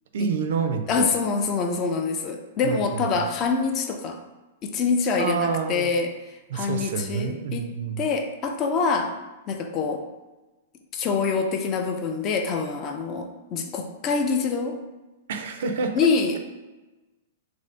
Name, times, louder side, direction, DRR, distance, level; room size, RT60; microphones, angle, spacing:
voice 1, 0.1-1.1 2.6-3.3 5.2-5.9 6.5-8.1 15.3-16.1, right 5 dB, 70° right, 6 dB, 0.4 m, -28 dB
voice 2, 0.9-4.2 4.6-6.1 6.5-9.2 9.5-10.0 10.9-14.8 15.9-16.4, left 4 dB, 30° left, 5 dB, 0.3 m, -25 dB
2.6 x 2.6 x 3.2 m, 1.1 s
hypercardioid pair, 140°, 0 cm